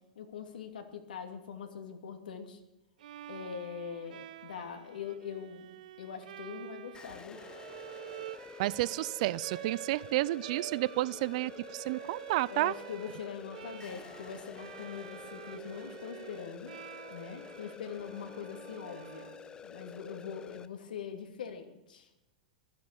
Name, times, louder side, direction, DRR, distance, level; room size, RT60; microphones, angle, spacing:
voice 1, 0.2-2.6 3.3-5.7 6.0-7.4 12.5-16.7 17.1-19.3 19.6-22.1, left 7 dB, 85° left, 5 dB, 2.6 m, -42 dB
Bowed string instrument, 3.0-19.9, right 13 dB, 75° right, 0.8 m, -49 dB
sound 1, 6.9-20.7, left 6 dB, 20° left, 0.7 m, -49 dB
voice 2, 8.6-12.7, right 18 dB, 55° right, 23 dB, 0.4 m, -31 dB
14.5 x 12.0 x 6.9 m, 0.94 s
hypercardioid pair, 125°, 5 cm